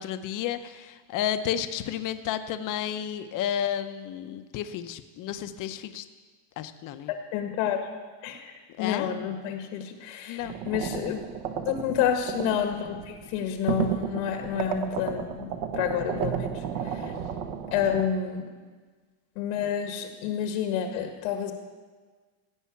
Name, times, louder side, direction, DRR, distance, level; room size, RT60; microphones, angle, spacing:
voice 1, 0.0-6.1 6.6-7.1 8.8-9.1 9.9-10.6 16.0-16.4 17.0-17.2, left 10 dB, 40° left, 10 dB, 0.7 m, -32 dB
voice 2, 7.1-7.9 8.2-11.2 11.6-17.1 17.7-18.5 19.4-21.5, left 8 dB, 85° left, 5 dB, 1.8 m, -29 dB
sound 1, 10.4-18.0, right 8 dB, 55° right, 1.1 m, -33 dB
16.0 x 5.6 x 8.4 m, 1.4 s
cardioid pair, 160°, 49 cm